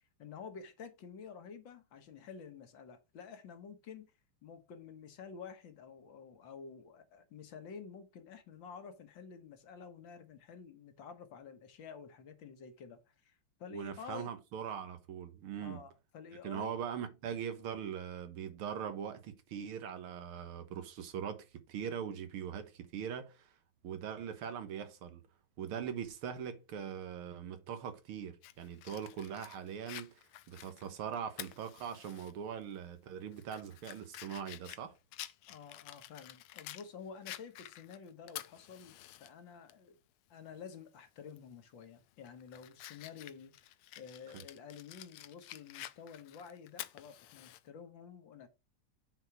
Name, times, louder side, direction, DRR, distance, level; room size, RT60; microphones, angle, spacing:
voice 1, 0.2-4.1 4.4-14.3 15.6-16.8 35.5-40.0 40.3-48.5, left 6 dB, 65° left, 1.8 m, -50 dB
voice 2, 13.7-15.8 16.4-23.5 23.8-25.2 25.6-34.9, right 8 dB, 85° right, 2.0 m, -41 dB
Fire, 28.4-32.3 32.7-32.8 33.3-36.9 37.3-39.3 39.7-39.8 41.3-41.5 42.0-47.6, left 14 dB, 80° left, 1.4 m, -50 dB
8.5 x 4.6 x 4.5 m
omnidirectional pair, 2.3 m